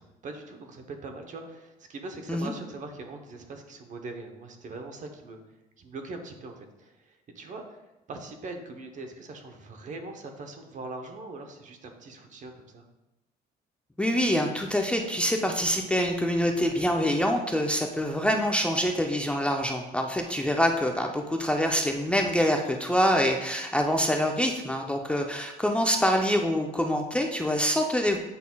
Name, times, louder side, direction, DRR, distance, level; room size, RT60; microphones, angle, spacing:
voice 1, 0.2-5.4 5.8-7.8 8.1-12.8 24.8-24.9, right 3 dB, 50° right, 5 dB, 0.9 m, -41 dB
voice 2, 14.0-28.2, equal, 5° left, 2 dB, 0.5 m, -25 dB
8.3 x 5.4 x 2.3 m, 0.99 s
cardioid pair, 110°, 17 cm